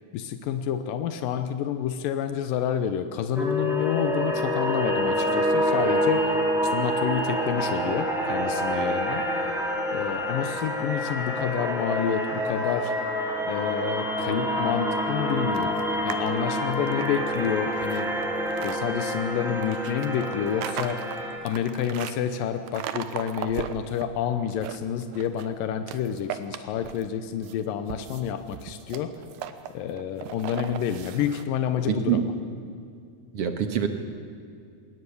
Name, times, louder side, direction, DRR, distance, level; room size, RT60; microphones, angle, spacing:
voice 1, 0.1-6.4 6.7-9.3 9.9-12.9 13.5-18.1 18.6-21.1 21.4-29.2 29.7-32.3, left 9 dB, 85° left, 9 dB, 2.6 m, -29 dB
sound 1, 3.4-21.4, equal, ahead, 3.2 m, -27 dB
sound 2, 15.5-16.3 16.7-18.8 19.6-22.2 22.7-24.0 24.4-25.5 25.9-27.1 27.4-31.4, right 10 dB, 85° right, 2.7 m, -37 dB
voice 2, 31.9-32.3 33.3-33.9, right 9 dB, 60° right, 7 dB, 1.8 m, -25 dB
20.5 x 18.5 x 9.6 m, 2.3 s
omnidirectional pair, 3.9 m